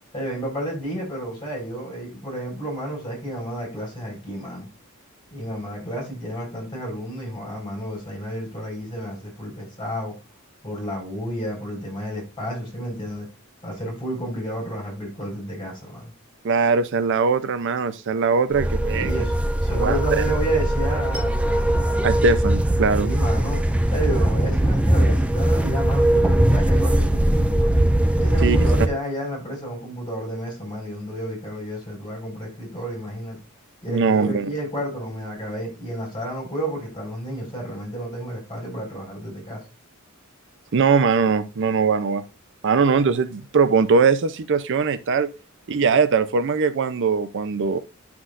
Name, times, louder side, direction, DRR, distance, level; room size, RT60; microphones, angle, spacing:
voice 1, 0.1-4.7 5.3-10.1 10.6-13.3 13.6-16.1 18.9-19.3 19.6-22.1 23.0-23.6 23.9-27.7 28.1-33.4 33.8-39.6, right 1 dB, 20° left, 5.2 m, -31 dB
voice 2, 16.4-19.3 19.7-20.2 22.0-23.1 28.4-28.6 33.9-34.5 40.7-42.2 42.6-45.3 45.7-47.8, right 5 dB, 60° right, 0.5 m, -21 dB
sound 1, 18.5-28.9, right 1 dB, 5° right, 0.4 m, -20 dB
11.0 x 6.0 x 2.5 m
head